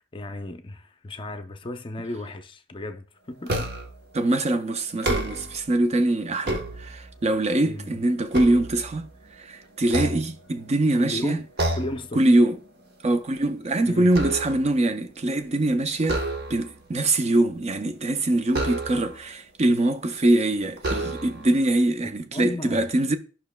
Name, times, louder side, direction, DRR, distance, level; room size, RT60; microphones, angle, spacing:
voice 1, 0.0-3.7 7.6-7.9 11.0-11.5 11.8-12.2 13.8-14.2 22.3-22.9, left 1 dB, 25° left, 0.5 m, -35 dB
sound 1, 3.5-4.0 4.9-5.7 6.2-7.3 7.8-9.3 9.8-10.8 11.6-12.1 12.4-12.7 13.1-14.8 16.0-16.8 18.5-19.3 20.0-20.1 20.8-21.5, right 1 dB, 55° right, 1.0 m, -30 dB
voice 2, 4.1-9.1 9.4-11.4 12.2-12.6 13.0-16.2 16.5-23.2, right 1 dB, 35° right, 0.6 m, -23 dB
10.5 x 5.7 x 2.2 m
head